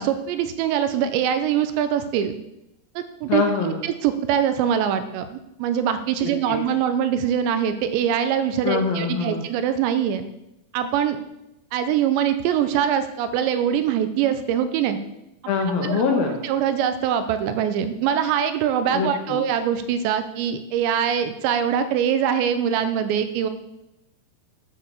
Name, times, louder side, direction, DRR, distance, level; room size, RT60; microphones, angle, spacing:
voice 1, 0.0-2.3 3.0-5.3 5.6-10.2 10.7-11.2 11.7-15.0 15.8-16.0 16.4-23.5, right 9 dB, 80° right, 10 dB, 2.8 m, -23 dB
voice 2, 3.3-3.8 6.2-6.6 8.6-9.4 15.5-16.4 18.9-19.4, left 5 dB, 65° left, 2 dB, 2.5 m, -24 dB
12.5 x 4.8 x 6.9 m, 0.87 s
omnidirectional pair, 5.3 m